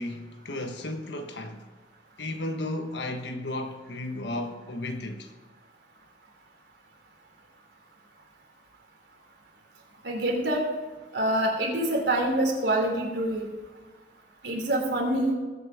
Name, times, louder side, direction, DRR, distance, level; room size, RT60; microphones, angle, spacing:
voice 1, 0.0-1.7 2.2-5.3, left 1 dB, 80° left, 1.3 m, -34 dB
voice 2, 10.0-10.6 11.1-13.5 14.4-15.3, right 1 dB, 80° right, 3.1 m, -26 dB
20.0 x 8.4 x 3.5 m
head